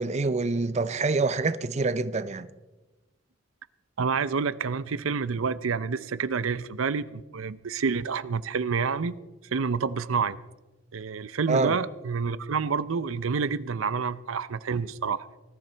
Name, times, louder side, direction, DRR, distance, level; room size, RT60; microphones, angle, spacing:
voice 1, 0.0-2.5 11.5-11.8, right 3 dB, 35° right, 0.5 m, -26 dB
voice 2, 4.0-9.2 9.5-10.4 10.9-15.3, right 5 dB, 85° right, 0.6 m, -28 dB
20.0 x 12.5 x 4.5 m
head